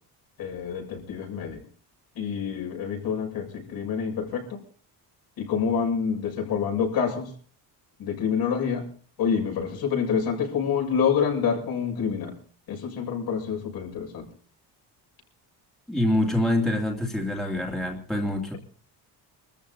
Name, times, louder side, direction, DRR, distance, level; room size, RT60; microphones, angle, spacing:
voice 1, 0.4-1.6 2.2-4.6 5.4-7.3 8.0-8.9 9.2-12.3 12.7-14.3, left 6 dB, 60° left, 1 dB, 7.2 m, -27 dB
voice 2, 15.9-18.5, left 1 dB, ahead, 0 dB, 2.5 m, -25 dB
25.0 x 14.0 x 4.1 m, 0.41 s
cardioid pair, 145°, 41 cm